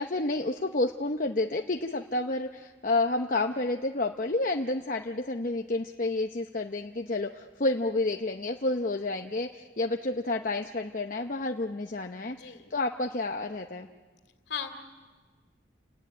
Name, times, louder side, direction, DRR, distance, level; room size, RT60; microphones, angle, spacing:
voice 1, 0.0-13.9, left 2 dB, 45° left, 4 dB, 0.8 m, -30 dB
voice 2, 12.3-12.7 14.5-14.7, left 7 dB, 60° left, 7 dB, 2.5 m, -37 dB
29.5 x 19.0 x 9.5 m, 1.4 s
head